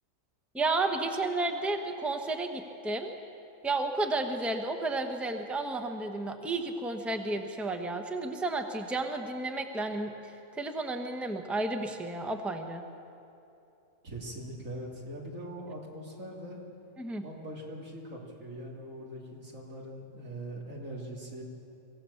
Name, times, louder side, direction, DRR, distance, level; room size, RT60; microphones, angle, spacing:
voice 1, 0.5-3.1 3.6-10.1 10.6-12.8 17.0-17.2, right 2 dB, ahead, 5 dB, 1.0 m, -32 dB
voice 2, 14.0-16.6 17.2-21.4, right 1 dB, 85° right, -2 dB, 3.4 m, -42 dB
24.0 x 16.0 x 7.1 m, 2.7 s
omnidirectional pair, 1.3 m